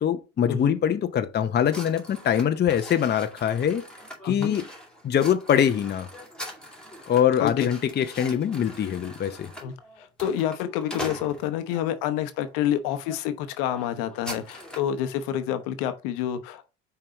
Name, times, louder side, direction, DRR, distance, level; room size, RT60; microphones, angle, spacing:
voice 1, 0.0-3.8 4.2-4.7 5.0-6.1 7.1-9.5, left 9 dB, 30° left, 0.7 m, -23 dB
sound 1, 1.7-11.8 12.5-12.7 13.0-13.2 13.5-15.0, equal, ahead, 2.3 m, -41 dB
voice 2, 4.2-4.6 7.4-7.7 9.6-16.7, left 10 dB, 70° left, 0.9 m, -28 dB
5.5 x 4.6 x 4.0 m
hypercardioid pair, 70°, 34 cm